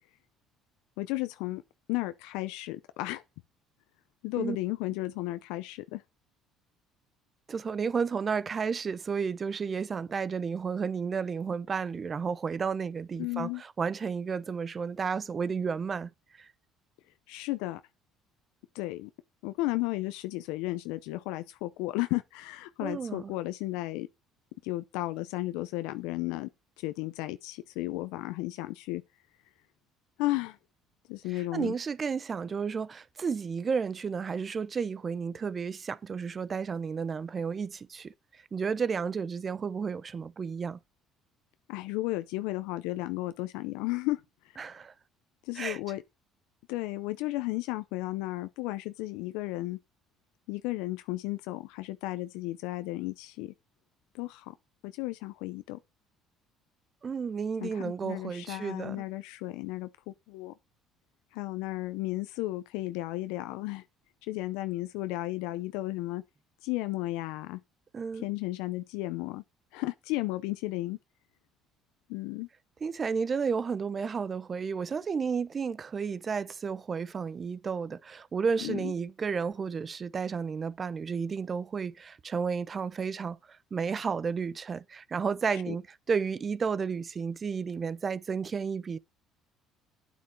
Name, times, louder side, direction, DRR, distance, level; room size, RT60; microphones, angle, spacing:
voice 1, 1.0-1.6 1.9-3.2 4.2-6.0 13.2-13.6 17.3-17.8 18.7-19.1 19.4-24.1 24.6-26.5 26.8-29.0 30.2-30.6 31.1-31.8 41.7-44.2 44.5-44.7 45.4-46.0 46.7-49.8 50.5-53.5 54.1-54.5 54.8-55.8 57.6-60.5 61.3-63.8 64.2-66.2 66.6-67.6 68.1-69.4 69.7-71.0 72.1-72.5 78.6-78.9 85.5-85.7, left 18 dB, 80° left, 0.6 m, -34 dB
voice 2, 7.5-16.1 16.4-16.5 22.8-23.3 31.3-40.8 44.6-44.9 45.6-45.8 57.0-59.0 67.9-68.3 72.8-89.0, right 5 dB, 35° right, 0.7 m, -32 dB
9.2 x 8.4 x 4.5 m
supercardioid pair, 80°, 0 cm